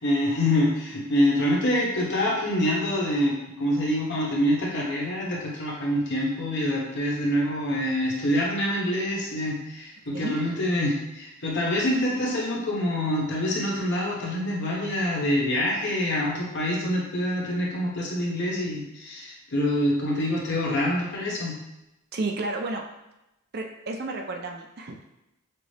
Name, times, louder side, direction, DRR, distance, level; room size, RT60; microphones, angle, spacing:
voice 1, 0.0-21.6, left 1 dB, 55° left, -3 dB, 1.1 m, -26 dB
voice 2, 22.1-22.8 23.5-25.0, right 2 dB, 50° right, 3 dB, 0.5 m, -31 dB
5.8 x 2.0 x 3.3 m, 0.91 s
head